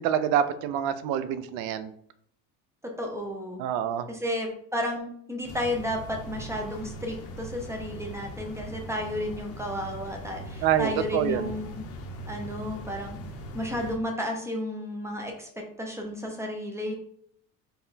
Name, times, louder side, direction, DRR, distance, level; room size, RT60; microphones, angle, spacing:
voice 1, 0.0-1.9 3.6-4.1 10.6-11.5, right 9 dB, 80° right, 12 dB, 0.5 m, -26 dB
voice 2, 2.8-3.6 4.1-11.8 12.3-13.2 13.5-15.5 15.8-16.9, left 1 dB, 10° right, 2 dB, 0.3 m, -32 dB
sound 1, 5.4-14.0, equal, 45° left, 0.6 m, -40 dB
4.1 x 2.2 x 3.9 m, 0.65 s
cardioid pair, 155°, 33 cm